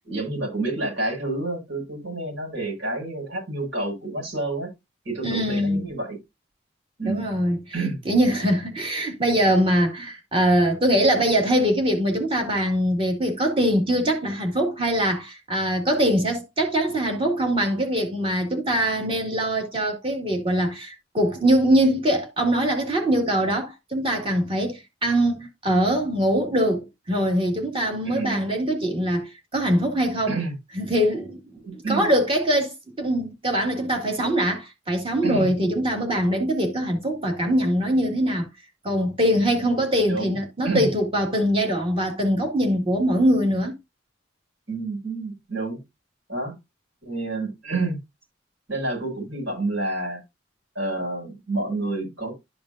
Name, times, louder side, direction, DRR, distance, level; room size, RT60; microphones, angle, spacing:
voice 1, 0.0-4.7 5.0-6.2 7.0-7.2 7.7-8.0 28.0-28.4 30.3-30.5 31.6-32.1 35.2-35.5 40.1-40.4 40.6-40.9 44.7-45.8 46.3-46.5 47.0-48.0 48.7-50.2 50.7-52.3, right 2 dB, 75° right, 6.2 m, -29 dB
voice 2, 5.2-5.8 7.0-30.4 30.8-31.4 31.7-38.5 38.8-43.7, equal, 30° right, 2.2 m, -23 dB
12.5 x 5.3 x 2.6 m
head